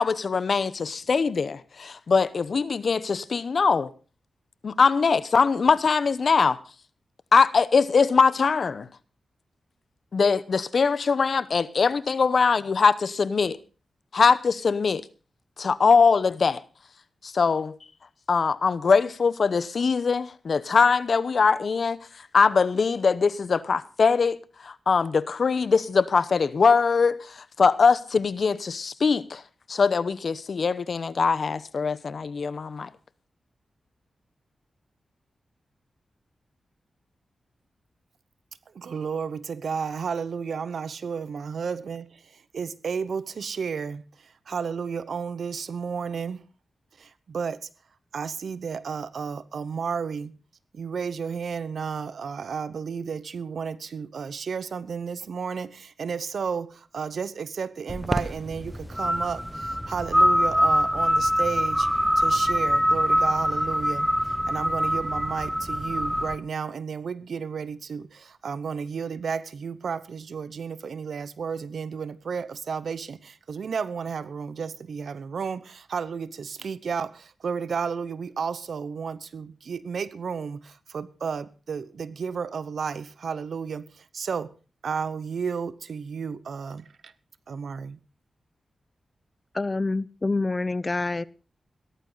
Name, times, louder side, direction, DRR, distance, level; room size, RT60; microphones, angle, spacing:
voice 1, 0.0-3.9 4.6-6.6 7.3-8.9 10.1-13.6 14.1-15.1 15.6-16.6 17.2-17.8 18.3-22.0 22.3-24.4 24.6-29.4 29.7-32.9, left 5 dB, 60° left, 0.8 m, -22 dB
voice 2, 38.7-46.4 47.0-47.7 48.1-50.3 50.7-61.9 62.2-64.1 64.5-84.5 84.8-87.1 87.5-88.0, right 6 dB, 75° right, 0.9 m, -32 dB
sound 1, 57.9-66.3, equal, ahead, 1.2 m, -24 dB
voice 3, 89.5-91.2, left 3 dB, 35° left, 0.6 m, -27 dB
16.5 x 13.5 x 3.9 m
cardioid pair, 65°, 0 cm